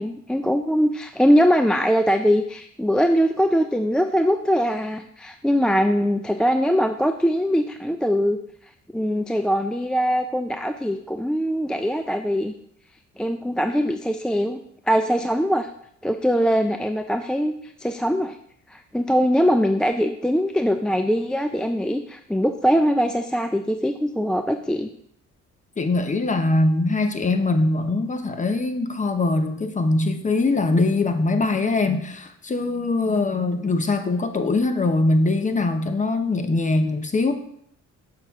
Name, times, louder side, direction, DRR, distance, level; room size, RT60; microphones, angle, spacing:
voice 1, 0.0-8.4 8.9-12.5 13.2-14.6 14.9-15.7 16.0-18.4 18.7-24.9, equal, 5° left, 6 dB, 0.3 m, -22 dB
voice 2, 25.8-37.3, left 2 dB, 25° left, 8 dB, 0.8 m, -22 dB
6.6 x 5.7 x 3.6 m, 0.69 s
cardioid pair, 90°, 30 cm